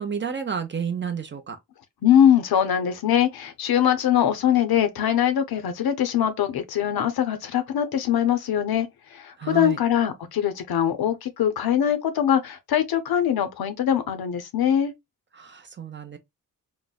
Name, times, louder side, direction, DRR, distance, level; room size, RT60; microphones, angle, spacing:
voice 1, 0.0-1.6 9.4-9.8 15.3-16.2, right 7 dB, 30° right, 0.5 m, -30 dB
voice 2, 2.0-14.9, left 10 dB, 85° left, 0.6 m, -22 dB
3.8 x 2.1 x 2.2 m
wide cardioid pair, 155°, 36 cm